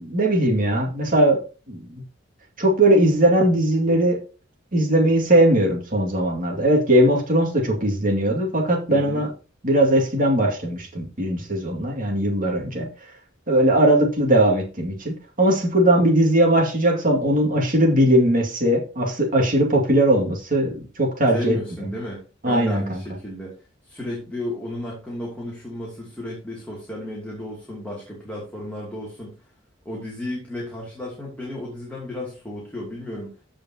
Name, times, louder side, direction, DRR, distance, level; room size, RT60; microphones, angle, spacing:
voice 1, 0.0-1.4 1.7-2.0 2.6-4.2 4.7-9.3 9.6-12.9 13.5-21.6 22.4-23.0, right 1 dB, 45° right, 1 dB, 2.4 m, -19 dB
voice 2, 8.9-9.3 21.3-23.6 23.9-29.3 29.8-33.3, left 1 dB, 5° left, -5 dB, 2.7 m, -33 dB
14.5 x 5.1 x 2.9 m, 0.34 s
head